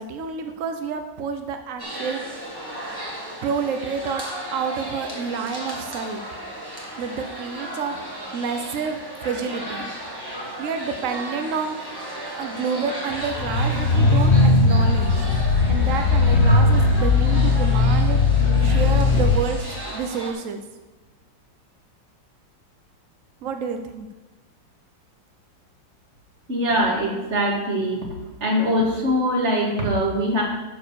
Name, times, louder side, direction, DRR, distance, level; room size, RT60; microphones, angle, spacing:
voice 1, 0.0-2.6 3.4-4.2 4.5-6.2 7.0-8.0 8.3-9.9 10.6-15.3 15.7-18.2 18.6-20.6 23.4-24.1, right 6 dB, 70° right, 7 dB, 0.7 m, -29 dB
sound 1, 1.8-20.3, right 1 dB, 10° right, 1.7 m, -35 dB
sound 2, 13.3-19.4, left 3 dB, 55° left, 0.8 m, -18 dB
voice 2, 26.5-28.0 28.4-30.4, equal, 35° right, -1 dB, 2.2 m, -22 dB
11.5 x 4.7 x 6.8 m, 1.2 s
omnidirectional pair, 2.2 m